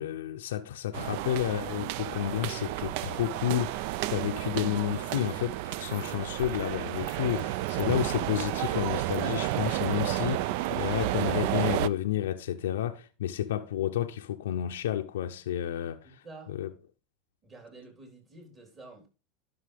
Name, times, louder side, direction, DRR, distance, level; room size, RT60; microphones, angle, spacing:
voice 1, 0.0-16.2 16.5-16.7, left 11 dB, 85° left, 0.5 m, -31 dB
sound 1, 0.9-11.9, right 15 dB, 65° right, 0.3 m, -31 dB
voice 2, 16.0-16.5 17.4-19.1, right 3 dB, 30° right, 3.7 m, -49 dB
11.5 x 5.6 x 3.4 m
hypercardioid pair, 110°, 0 cm